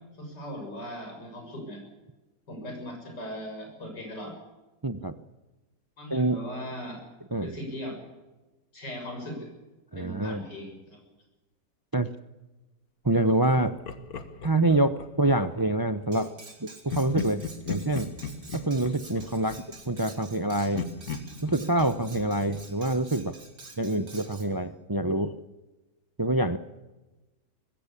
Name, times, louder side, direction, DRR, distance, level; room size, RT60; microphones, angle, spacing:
voice 1, 0.2-1.8 2.5-4.3 6.0-7.0 7.4-8.0 8.7-9.5 10.0-11.0, equal, 90° left, 2 dB, 7.4 m, -38 dB
voice 2, 4.8-5.1 6.1-6.4 7.3-7.5 9.9-10.4 11.9-12.1 13.0-13.8 14.4-16.3 16.6-17.4 17.7-18.1 18.5-20.9 21.4-23.4 23.8-25.3 26.2-26.6, right 2 dB, 35° right, 11 dB, 0.3 m, -26 dB
Laughter, 13.6-15.7 16.9-20.4 20.7-23.5, left 5 dB, 60° left, 1.8 m, -38 dB
Cutlery silverware, 16.1-24.5, right 3 dB, 55° right, 3.6 m, -48 dB
21.5 x 16.0 x 8.4 m, 1.1 s
omnidirectional pair, 1.8 m